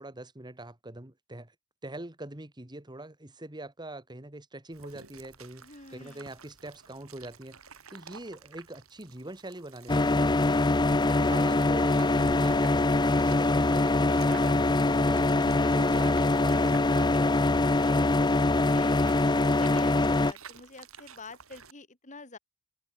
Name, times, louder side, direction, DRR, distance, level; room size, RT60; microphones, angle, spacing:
voice 1, 0.0-1.5 1.8-17.7, right 1 dB, 20° right, 2.0 m, -43 dB
sound 1, 4.7-21.7, right 6 dB, 80° right, 5.8 m, -52 dB
voice 2, 5.6-6.3 18.6-19.2 19.6-22.4, left 3 dB, 35° left, 3.7 m, -47 dB
sound 2, 9.9-20.3, left 2 dB, 20° left, 0.6 m, -23 dB
head